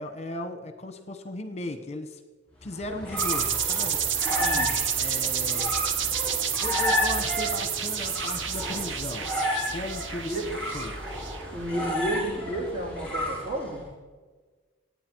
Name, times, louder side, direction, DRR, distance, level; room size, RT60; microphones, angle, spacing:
voice 1, 0.0-2.2 2.6-4.0 5.0-5.7 6.6-9.3 9.7-10.3 10.7-10.9, left 2 dB, 35° left, 8 dB, 1.0 m, -36 dB
sound 1, 2.7-13.8, left 1 dB, 5° left, 6.1 m, -32 dB
sound 2, 3.2-11.7, right 8 dB, 70° right, 1.0 m, -29 dB
voice 2, 4.4-4.7 10.3-10.5 11.5-13.8, right 1 dB, 40° right, 0 dB, 3.8 m, -31 dB
26.5 x 9.4 x 4.6 m, 1.3 s
head